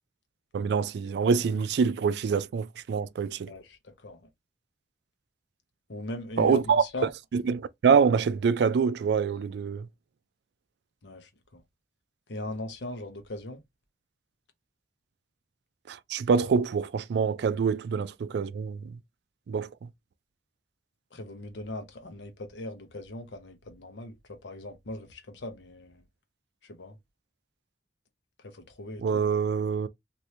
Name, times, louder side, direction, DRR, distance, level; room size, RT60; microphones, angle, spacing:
voice 1, 0.5-3.5 6.4-9.9 15.9-19.0 19.5-19.7 29.0-29.9, right 6 dB, 65° right, 0.3 m, -25 dB
voice 2, 3.5-4.2 5.9-7.1 11.0-11.6 12.3-13.6 21.1-26.0 26.6-27.0 28.4-29.2, left 1 dB, 80° left, 0.8 m, -39 dB
2.8 x 2.6 x 3.1 m
head